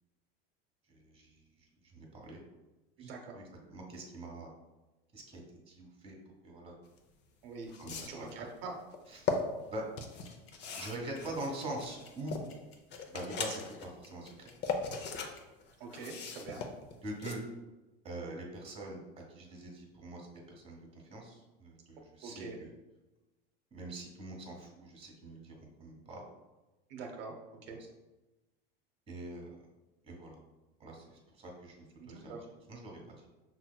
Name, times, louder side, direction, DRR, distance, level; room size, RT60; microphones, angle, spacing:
voice 1, 0.9-1.5 1.8-2.4 3.0-4.5 5.1-6.1 6.4-6.7 7.8-8.5 9.1-9.4 9.7-9.8 10.8-12.4 13.1-14.5 17.0-17.4 18.0-22.7 23.7-26.2 27.7-27.8 29.1-29.6 30.0-30.4 30.8-32.4 32.7-33.3, right 1 dB, 20° right, 1 dB, 1.1 m, -44 dB
voice 2, 3.0-3.4 7.4-7.7 8.1-8.7 15.8-16.7 22.2-22.6 26.9-27.8 32.0-32.4, right 4 dB, 75° right, 2 dB, 0.7 m, -44 dB
sound 1, 7.0-7.1 7.7-8.3 8.9-9.4 10.0-12.5 12.9-13.8 14.3-15.3 15.6-17.3, left 5 dB, 35° left, 0.6 m, -38 dB
sound 2, 10.2-15.4, left 7 dB, 80° left, 0.9 m, -57 dB
6.0 x 2.9 x 2.2 m, 1.1 s
supercardioid pair, 110°, 29 cm